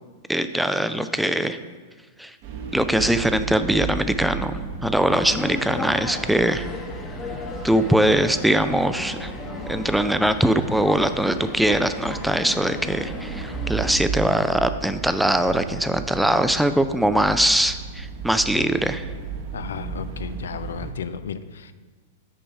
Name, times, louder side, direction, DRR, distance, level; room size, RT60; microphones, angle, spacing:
voice 1, 0.3-1.6 2.2-2.4 2.7-6.7 7.6-9.3 9.7-19.1, right 1 dB, ahead, 10 dB, 0.4 m, -22 dB
sound 1, 2.4-20.9, right 5 dB, 50° right, 0.9 m, -35 dB
sound 2, 5.0-14.0, left 3 dB, 20° left, 1.1 m, -35 dB
voice 2, 19.5-21.7, left 7 dB, 75° left, 12 dB, 0.4 m, -34 dB
6.7 x 5.0 x 4.6 m, 1.4 s
hypercardioid pair, 105°, 0 cm